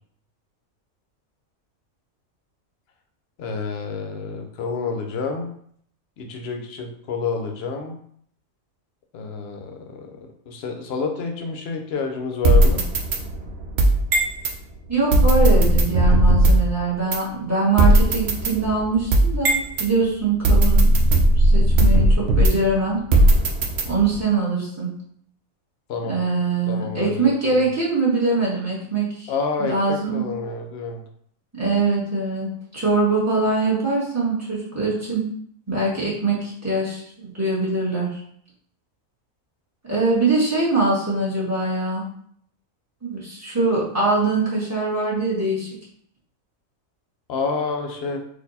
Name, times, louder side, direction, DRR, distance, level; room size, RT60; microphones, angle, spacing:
voice 1, 3.4-5.5 6.2-8.0 9.1-10.2 10.5-12.9 25.9-26.2 26.7-27.7 29.3-31.0 47.3-48.2, left 4 dB, 55° left, 4 dB, 0.8 m, -28 dB
sound 1, 12.4-14.5 15.1-16.7 17.1-17.2 17.8-19.9 20.4-22.7 23.1-24.2, right 1 dB, 60° right, 0.8 m, -17 dB
voice 2, 14.9-20.9 21.4-23.0 23.8-24.9 26.1-29.3 29.6-30.2 31.5-35.2 35.7-38.2 39.9-42.0 43.0-45.7, right 3 dB, 10° right, -7 dB, 1.5 m, -23 dB
4.3 x 2.6 x 4.1 m, 0.64 s
omnidirectional pair, 1.4 m